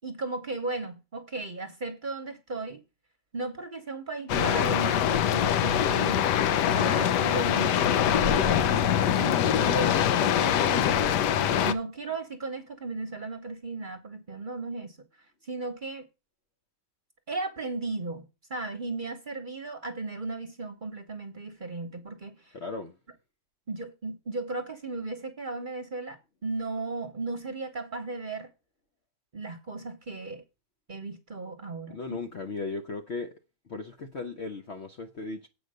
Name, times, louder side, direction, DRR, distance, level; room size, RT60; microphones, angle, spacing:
voice 1, 0.0-2.8 3.3-6.2 6.8-11.2 11.6-15.0 15.4-16.1 17.3-18.2 18.5-22.6 23.7-26.2 26.4-28.5 29.3-30.4 30.9-32.2, right 3 dB, 35° right, 1.0 m, -36 dB
sound 1, 4.3-11.7, left 9 dB, 80° left, 1.3 m, -24 dB
voice 2, 22.5-23.0 31.9-33.3 33.7-35.5, left 3 dB, 55° left, 0.8 m, -36 dB
7.9 x 5.1 x 6.5 m
omnidirectional pair, 1.8 m